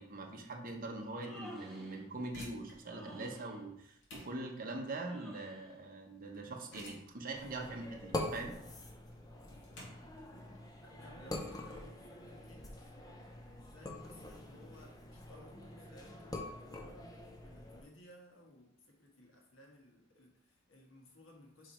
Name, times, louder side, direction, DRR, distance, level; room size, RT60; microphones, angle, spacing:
voice 1, 0.0-8.6, right 2 dB, 45° right, 1 dB, 1.0 m, -43 dB
Human voice, 1.0-2.0 2.9-3.6 5.0-5.7, equal, ahead, 1.4 m, -52 dB
sound 1, 2.2-12.8, left 1 dB, 65° left, 2.2 m, -56 dB
sound 2, 7.4-17.8, left 1 dB, 20° left, 0.7 m, -45 dB
voice 2, 10.8-12.9 13.6-21.7, left 1 dB, 85° left, 0 dB, 1.5 m, -59 dB
5.0 x 4.9 x 4.4 m, 0.77 s
head